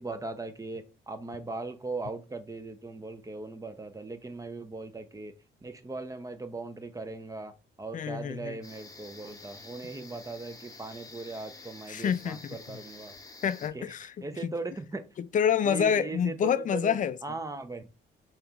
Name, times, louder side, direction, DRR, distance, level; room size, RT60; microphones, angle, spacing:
voice 1, 0.0-5.3 5.6-7.5 7.8-12.4 12.7-13.1 13.7-13.8 14.2-15.0 15.7-16.9 17.2-17.9, right 3 dB, 15° right, 0.6 m, -38 dB
voice 2, 7.9-8.6 11.9-12.8 13.4-14.5 15.2-17.4, left 8 dB, 40° left, 0.4 m, -28 dB
sound 1, 8.6-13.7, left 3 dB, 15° left, 0.9 m, -49 dB
5.1 x 2.9 x 2.4 m
cardioid pair, 90°, 20 cm